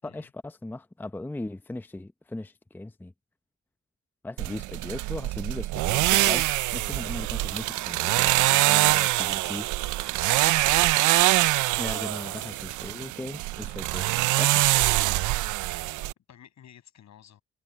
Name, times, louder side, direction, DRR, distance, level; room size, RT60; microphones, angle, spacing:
voice 1, 0.0-3.1 4.2-9.7 11.8-14.1 14.4-14.6, left 2 dB, 5° left, 0.7 m, -38 dB
sound 1, 4.4-16.1, right 17 dB, 80° right, 0.5 m, -24 dB
voice 2, 10.6-11.0 12.2-12.8 15.6-15.9 16.3-17.4, left 10 dB, 65° left, 7.0 m, -53 dB
cardioid pair, 90°, 30 cm